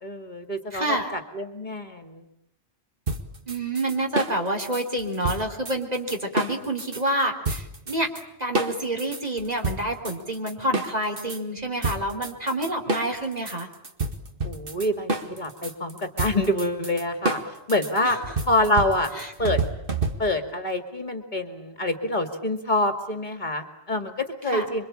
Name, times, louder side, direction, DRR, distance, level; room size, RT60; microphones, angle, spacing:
voice 1, 0.0-2.2 14.4-17.4 17.7-18.2 18.5-19.1 19.4-19.6 20.2-24.9, left 1 dB, 40° left, 7 dB, 2.5 m, -26 dB
voice 2, 0.7-1.1 3.5-8.1 8.4-13.7 18.0-18.2 19.2-19.3 24.5-24.6, right 1 dB, 35° right, 3 dB, 3.8 m, -28 dB
sound 1, 3.1-7.0 7.4-8.2 8.5-11.4 11.8-20.5, right 3 dB, 55° right, 2.1 m, -30 dB
27.0 x 24.0 x 8.8 m, 0.80 s
omnidirectional pair, 1.1 m